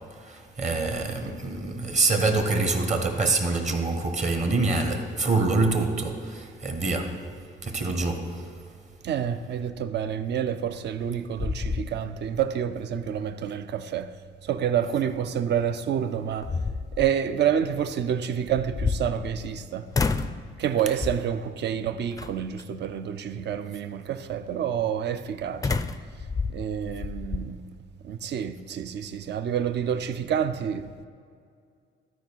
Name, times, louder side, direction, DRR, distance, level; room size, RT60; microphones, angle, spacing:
voice 1, 0.2-7.3 7.6-8.5, right 3 dB, 35° right, 1.2 m, -26 dB
voice 2, 9.0-14.1 14.4-16.6 17.0-19.9 20.6-25.8 26.5-27.6 28.0-31.1, right 8 dB, 60° right, 0.5 m, -28 dB
sound 1, 10.7-11.1 11.4-12.4 12.8-12.9 15.6-15.7 16.2-17.1 18.5-19.6 19.9-20.4 21.0-21.4 22.2-22.6 25.6-27.5, left 4 dB, 20° left, 0.4 m, -29 dB
12.5 x 4.8 x 4.6 m
cardioid pair, 90°, 20 cm